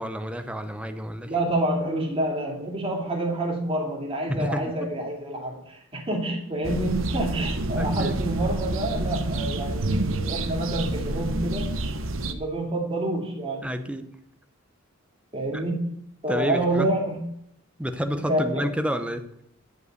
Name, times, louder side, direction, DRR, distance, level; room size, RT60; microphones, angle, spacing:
voice 1, 0.0-1.3 4.3-4.9 7.8-8.2 13.6-14.1 15.5-15.6 16.3-16.9 17.8-19.3, equal, 5° right, 8 dB, 0.8 m, -29 dB
voice 2, 1.2-11.8 12.2-13.7 15.3-15.9 16.2-17.2 18.3-18.6, right 1 dB, 25° right, 0 dB, 2.6 m, -28 dB
sound 1, 6.6-12.3, right 2 dB, 65° right, 0.9 m, -28 dB
11.0 x 5.5 x 7.8 m, 0.72 s
head